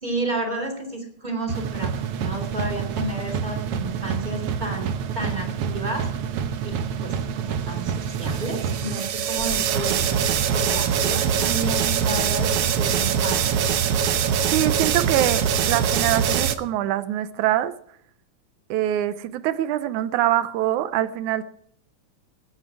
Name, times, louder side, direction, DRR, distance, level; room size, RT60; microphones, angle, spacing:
voice 1, 0.0-6.1 6.6-10.1 10.5-13.5, right 1 dB, 15° right, 2.6 m, -31 dB
sound 1, 1.5-16.6, right 8 dB, 65° right, 1.7 m, -24 dB
voice 2, 14.5-17.7 18.7-21.4, right 13 dB, 85° right, 2.2 m, -24 dB
16.0 x 12.0 x 4.8 m
omnidirectional pair, 3.4 m